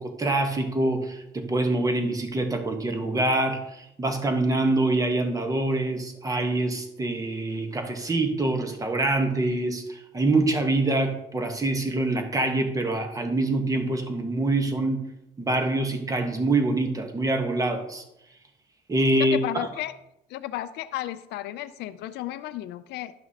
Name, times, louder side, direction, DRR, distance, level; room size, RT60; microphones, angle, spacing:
voice 1, 0.0-15.0 15.4-18.0 18.9-19.7, right 2 dB, 20° right, 5 dB, 1.1 m, -25 dB
voice 2, 19.2-19.9 20.3-23.1, left 14 dB, 80° left, 12 dB, 0.4 m, -33 dB
11.0 x 5.8 x 2.8 m, 0.84 s
cardioid pair, 110°, 17 cm